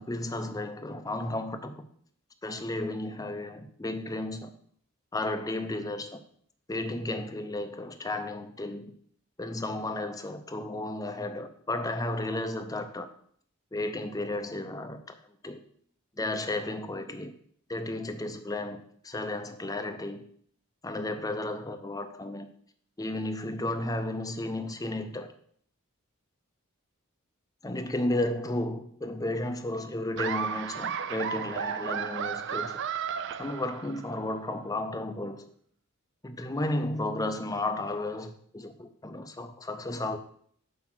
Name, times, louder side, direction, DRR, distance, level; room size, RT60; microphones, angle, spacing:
voice 1, 0.0-1.9 2.4-4.5 5.1-6.2 6.7-8.9 9.4-13.1 13.7-15.1 15.4-15.6 16.2-17.3 17.7-20.3 20.8-22.5 23.0-25.3 27.6-32.8 33.4-35.5 36.2-40.2, left 2 dB, 15° left, 9 dB, 0.6 m, -33 dB
Laughter, 30.2-34.2, right 7 dB, 55° right, 0.4 m, -33 dB
5.8 x 5.1 x 6.1 m, 0.62 s
head